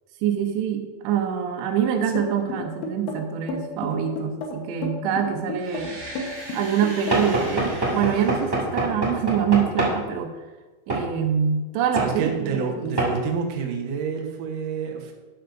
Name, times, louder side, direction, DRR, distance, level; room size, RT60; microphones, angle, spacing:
voice 1, 0.2-6.0 6.5-10.3 10.9-12.9, right 8 dB, 85° right, 6 dB, 3.1 m, -25 dB
sound 1, 2.2-7.4, left 2 dB, 70° left, 2.4 m, -32 dB
sound 2, 5.5-9.5, right 2 dB, 50° right, 3.8 m, -40 dB
Knock / Wood, 7.1-10.0 10.9-11.1 12.0-12.1 13.0-13.2, right 1 dB, 30° right, 0.4 m, -24 dB
voice 2, 12.0-15.1, right 6 dB, 70° right, 1 dB, 2.1 m, -28 dB
12.0 x 9.1 x 2.6 m, 1.3 s
omnidirectional pair, 5.0 m